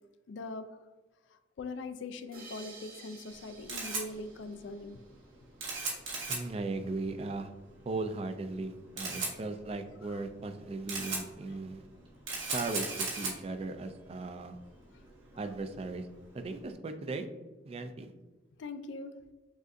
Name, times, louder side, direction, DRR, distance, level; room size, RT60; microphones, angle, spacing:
voice 1, 0.3-0.9 1.3-5.0 10.0-10.3 11.5-11.6 14.9-15.0 18.6-19.2, left 3 dB, 70° left, 10 dB, 0.4 m, -42 dB
sound 1, 2.3-5.6, right 3 dB, 45° right, 0.8 m, -53 dB
Camera, 3.3-16.7, right 3 dB, 80° right, 1.4 m, -40 dB
voice 2, 6.3-7.5 7.9-11.9 12.5-14.6 15.3-16.1 16.3-17.3 17.6-18.1, right 3 dB, 30° right, 7 dB, 0.3 m, -37 dB
6.2 x 2.5 x 2.6 m, 1.2 s
head